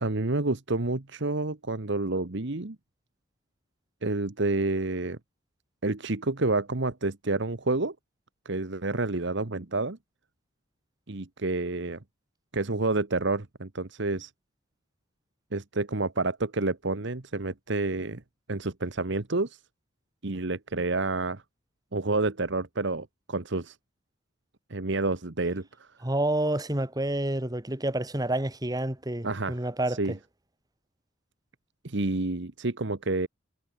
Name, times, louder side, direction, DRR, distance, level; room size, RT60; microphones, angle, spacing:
voice 1, 0.0-2.8 4.0-5.2 5.8-7.9 8.4-10.0 11.1-12.0 12.5-14.3 15.5-18.2 18.5-19.6 20.2-21.4 21.9-23.8 24.7-25.7 29.2-29.6 29.9-30.2 31.8-33.3, right 2 dB, 60° right, 1.3 m, -29 dB
voice 2, 26.0-30.2, right 1 dB, 20° right, 1.7 m, -29 dB
head